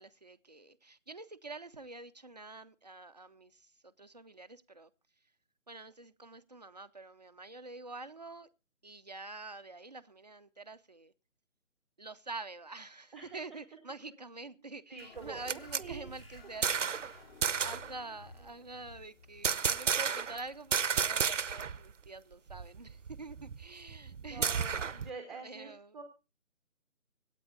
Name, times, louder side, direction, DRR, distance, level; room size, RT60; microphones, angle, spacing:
voice 1, 0.0-4.9 5.2-5.3 5.7-8.5 8.8-11.1 12.0-17.0 17.6-24.5 25.4-26.0, right 3 dB, 30° right, 0.6 m, -47 dB
voice 2, 14.9-16.1 24.1-26.0, right 4 dB, ahead, 1.0 m, -46 dB
sound 1, 15.0-22.1, left 3 dB, 45° left, 4.2 m, -56 dB
sound 2, 15.2-17.1 17.4-17.9 19.4-20.4 20.7-21.8 22.1-22.2 22.5-25.1, right 6 dB, 60° right, 0.8 m, -32 dB
25.5 x 9.0 x 2.4 m
figure-of-eight pair, 160°, 41 cm